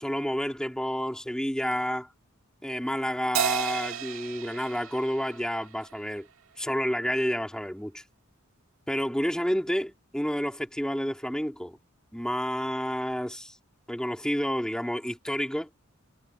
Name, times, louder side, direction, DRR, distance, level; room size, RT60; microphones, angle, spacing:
voice 1, 0.0-2.1 2.6-6.3 6.6-8.0 8.9-11.8 12.1-13.6 13.9-15.7, equal, 5° left, 2.9 m, -30 dB
Crash cymbal, 3.3-6.0, right 9 dB, 75° right, 2.2 m, -32 dB
head